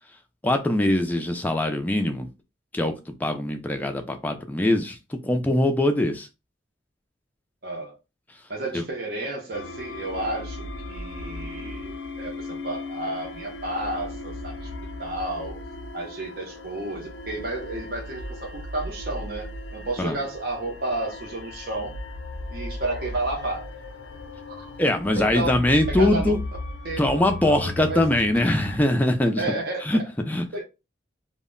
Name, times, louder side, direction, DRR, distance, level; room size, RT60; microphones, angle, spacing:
voice 1, 0.4-2.3 2.7-2.9 3.2-5.0 5.2-6.3 8.7-8.8 20.0-20.2 24.8-26.4 27.0-29.4 29.8-30.0 30.3-30.4, left 1 dB, 10° left, 0.3 m, -22 dB
voice 2, 7.6-8.0 8.5-14.7 15.0-15.6 15.9-21.9 22.5-23.7 24.5-24.7 25.2-25.5 25.9-26.3 26.8-27.1 27.4-28.1 29.4-29.8 30.5-30.6, right 2 dB, 55° right, 0.6 m, -31 dB
sound 1, 9.5-28.8, left 2 dB, 80° left, 0.4 m, -36 dB
2.1 x 2.0 x 3.6 m
head